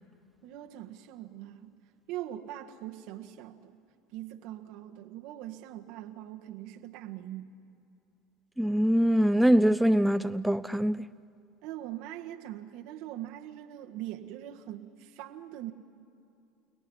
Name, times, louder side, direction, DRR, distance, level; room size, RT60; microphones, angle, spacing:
voice 1, 0.4-1.7 2.1-3.8 4.1-7.6 11.6-15.7, right 13 dB, 65° right, 1.6 m, -42 dB
voice 2, 8.6-11.1, equal, 5° right, 0.5 m, -23 dB
29.5 x 18.5 x 9.9 m
hypercardioid pair, 75°, 0 cm